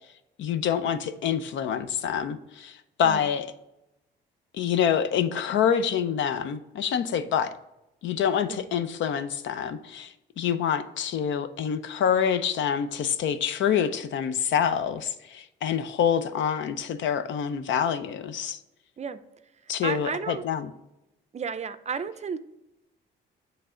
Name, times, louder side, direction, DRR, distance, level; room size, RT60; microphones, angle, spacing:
voice 1, 0.4-3.5 4.5-7.5 8.0-18.6 19.7-20.7, left 8 dB, 70° left, 11 dB, 0.5 m, -26 dB
voice 2, 19.8-20.4 21.3-22.4, right 6 dB, 35° right, 12 dB, 0.4 m, -33 dB
7.8 x 3.3 x 3.7 m, 0.89 s
cardioid pair, 90°, 20 cm